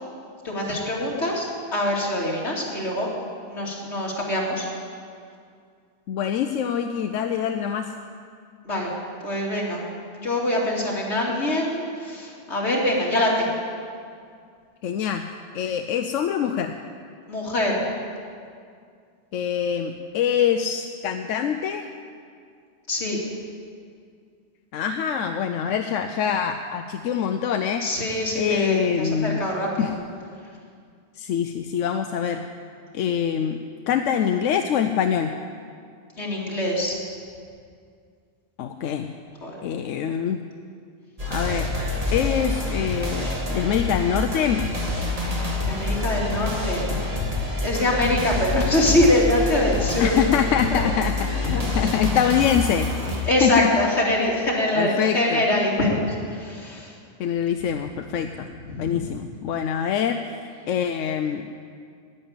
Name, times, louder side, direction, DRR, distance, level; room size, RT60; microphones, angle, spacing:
voice 1, 0.4-3.1 3.5-4.7 8.6-8.9 9.2-9.8 10.2-13.6 17.3-17.8 22.9-23.2 27.8-30.0 36.2-36.9 39.4-39.6 45.6-46.9 47.6-50.1 50.7-50.8 51.4-51.7 53.2-56.9 58.7-59.0, left 1 dB, 65° left, -3 dB, 2.8 m, -24 dB
voice 2, 6.1-7.9 14.8-15.2 15.5-16.7 19.3-21.9 24.7-27.8 28.4-29.4 29.8-29.9 31.2-32.4 32.9-33.6 33.9-35.3 38.6-39.1 39.6-40.4 41.3-41.7 42.1-44.6 50.0-52.9 53.4-53.7 54.8-55.4 57.2-58.5 58.8-60.4 60.7-61.5, left 8 dB, 90° left, 6 dB, 1.0 m, -24 dB
sound 1, 41.2-53.2, left 2 dB, 30° right, 2.0 m, -27 dB
11.0 x 9.8 x 8.8 m, 2.2 s
omnidirectional pair, 1.3 m